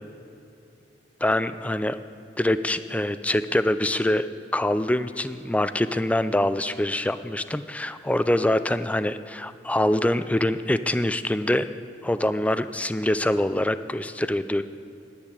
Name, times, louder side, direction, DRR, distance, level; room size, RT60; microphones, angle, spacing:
voice 1, 1.2-2.0 2.4-11.7 12.0-14.6, left 1 dB, 10° left, 12 dB, 0.4 m, -24 dB
10.5 x 8.5 x 9.5 m, 2.7 s
head